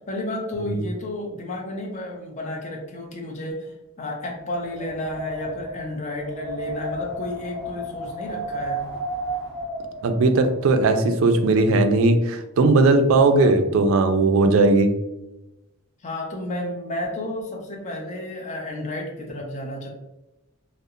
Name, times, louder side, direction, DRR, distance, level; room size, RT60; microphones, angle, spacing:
voice 1, 0.0-8.8 13.3-13.6 16.0-19.9, left 1 dB, 35° left, 0 dB, 0.4 m, -32 dB
Wind, 4.6-10.6, right 1 dB, 20° right, 0.7 m, -32 dB
voice 2, 10.0-14.9, right 3 dB, 65° right, 7 dB, 0.3 m, -18 dB
2.7 x 2.0 x 2.4 m, 0.96 s
head